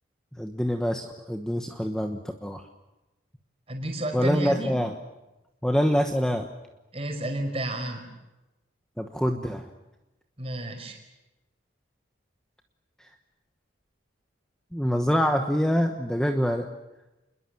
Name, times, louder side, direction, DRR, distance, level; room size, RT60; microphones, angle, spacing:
voice 1, 0.4-2.6 4.1-5.0 5.6-6.5 9.0-9.7 14.7-16.7, equal, 5° left, 4 dB, 1.1 m, -25 dB
voice 2, 3.7-4.7 6.9-8.0 10.4-11.0, right 1 dB, 30° right, 4 dB, 4.9 m, -31 dB
28.5 x 21.5 x 7.7 m, 1.0 s
head